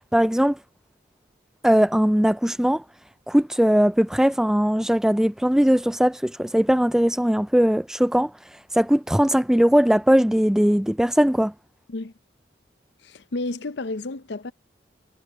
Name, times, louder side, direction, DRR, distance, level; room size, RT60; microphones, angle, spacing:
voice 1, 0.1-0.6 1.6-2.8 3.3-8.3 8.7-11.5, equal, 5° right, 0.3 m, -19 dB
voice 2, 13.0-14.5, left 2 dB, 70° left, 0.7 m, -31 dB
head